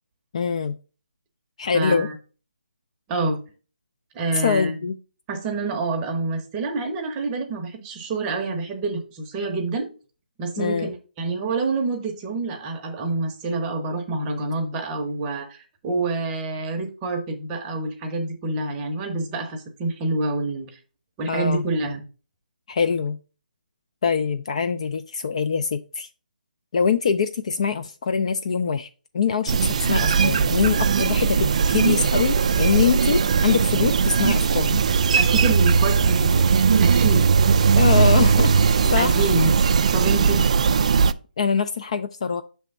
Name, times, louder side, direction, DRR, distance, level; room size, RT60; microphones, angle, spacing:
voice 1, 0.3-0.8 1.6-2.1 4.3-5.0 10.6-10.9 21.3-21.6 22.7-23.2 24.0-26.1 26.7-28.9 29.1-34.8 37.8-38.5 38.9-39.3 41.4-42.4, left 6 dB, 40° left, 0.3 m, -23 dB
voice 2, 1.7-2.2 3.1-3.4 4.1-4.7 5.3-9.9 10.4-20.8 21.2-22.0 35.1-36.5 36.8-37.3 39.0-39.5 39.9-40.4, right 3 dB, 15° right, 0.7 m, -27 dB
sound 1, 29.5-41.1, right 5 dB, 45° right, 0.3 m, -19 dB
6.0 x 3.4 x 5.1 m
hypercardioid pair, 165°, 5 cm